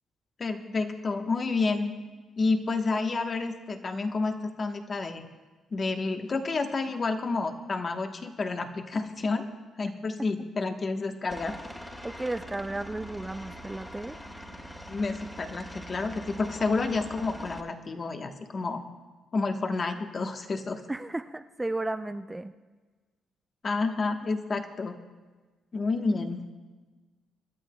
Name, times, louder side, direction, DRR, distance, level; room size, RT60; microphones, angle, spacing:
voice 1, 0.4-1.9 2.4-5.3 5.7-9.5 9.8-11.6 14.9-18.8 19.3-20.8 23.6-24.9 25.7-26.4, left 3 dB, 40° left, 5 dB, 1.1 m, -29 dB
Aircraft, 11.3-17.6, equal, 10° left, 1.6 m, -43 dB
voice 2, 12.0-14.2 20.9-22.5, right 2 dB, 15° right, 9 dB, 0.4 m, -34 dB
26.5 x 11.5 x 2.2 m, 1.3 s
cardioid pair, 90°, 0 cm